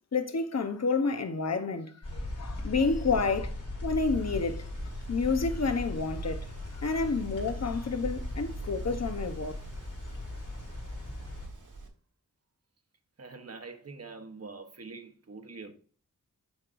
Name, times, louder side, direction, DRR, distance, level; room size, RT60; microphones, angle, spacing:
voice 1, 0.1-3.5 3.8-4.7 5.1-6.5 6.7-9.5, left 4 dB, 55° left, 0.9 m, -29 dB
sound 1, 2.0-11.5, left 1 dB, 70° left, 2.7 m, -38 dB
Wind, 4.0-11.9, right 2 dB, 70° right, 1.4 m, -46 dB
voice 2, 13.2-15.7, right 4 dB, 50° right, 1.1 m, -45 dB
9.3 x 4.7 x 2.5 m
wide cardioid pair, 65°, 32 cm